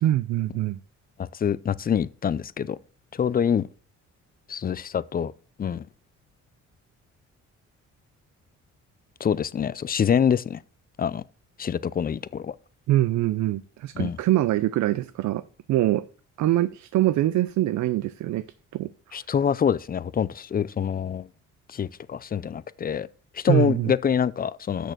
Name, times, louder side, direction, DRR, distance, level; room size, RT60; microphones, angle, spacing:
voice 1, 0.0-0.8 12.9-15.4 15.7-16.1 16.4-18.5 18.7-18.9 23.5-23.9, right 14 dB, 70° right, 0.5 m, -23 dB
voice 2, 1.2-2.8 3.1-3.7 4.5-5.3 5.6-5.9 9.2-10.6 11.0-11.2 11.6-12.5 14.0-14.2 19.1-21.3 21.7-23.1 23.3-24.9, left 8 dB, 30° left, 0.5 m, -25 dB
6.5 x 6.4 x 6.6 m
cardioid pair, 90°, 30 cm